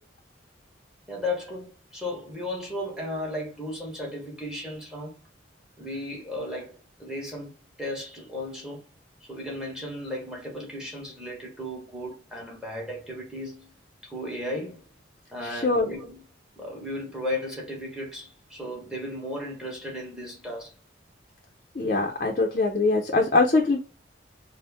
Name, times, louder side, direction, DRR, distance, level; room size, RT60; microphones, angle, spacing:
voice 1, 1.1-5.2 5.8-8.8 9.2-13.7 14.0-14.8 15.3-16.3 16.6-20.7, left 1 dB, 5° right, 1.0 m, -35 dB
voice 2, 15.5-15.9 21.8-23.8, left 3 dB, 45° left, 0.5 m, -22 dB
4.0 x 2.0 x 3.4 m
head